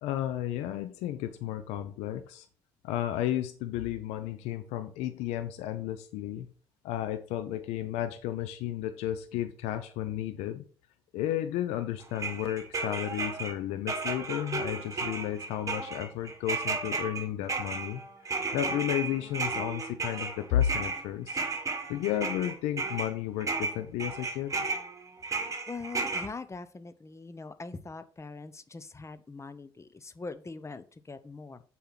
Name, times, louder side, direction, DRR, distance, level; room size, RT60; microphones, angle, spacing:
voice 1, 0.0-2.5 2.8-6.5 6.8-10.6 11.1-18.0 18.5-21.4 21.9-24.6, left 12 dB, 80° left, 10 dB, 0.6 m, -33 dB
sound 1, 12.1-13.5 13.9-23.1 23.4-26.3, right 4 dB, 30° right, 1.9 m, -34 dB
voice 2, 25.7-31.6, left 3 dB, 25° left, 13 dB, 0.9 m, -42 dB
6.9 x 4.7 x 5.8 m, 0.41 s
supercardioid pair, 60°, 11 cm